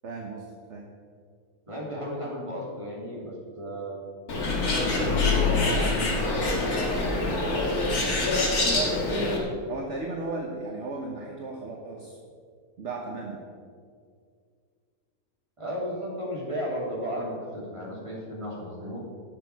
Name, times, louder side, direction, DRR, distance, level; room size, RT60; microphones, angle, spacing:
voice 1, 0.0-0.8 8.7-9.2 9.7-12.2 12.8-13.4, right 3 dB, 55° right, 0 dB, 1.3 m, -35 dB
voice 2, 1.7-4.0 4.8-6.4 15.6-19.0, equal, 20° right, -5 dB, 2.9 m, -34 dB
Bird, 4.3-9.4, left 2 dB, 85° left, 2.4 m, -25 dB
18.0 x 6.8 x 4.7 m, 2.1 s
omnidirectional pair, 1.6 m